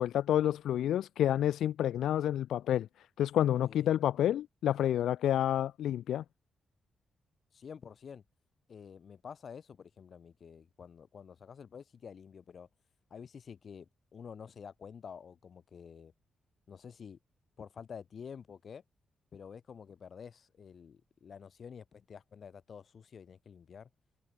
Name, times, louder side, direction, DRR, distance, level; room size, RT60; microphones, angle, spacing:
voice 1, 0.0-2.9 3.2-6.2, left 11 dB, 90° left, 0.9 m, -29 dB
voice 2, 7.5-8.2 8.7-12.7 13.1-16.1 16.7-17.2 17.6-18.8 19.3-23.9, left 7 dB, 60° left, 4.2 m, -49 dB
cardioid pair, 75°, 0 cm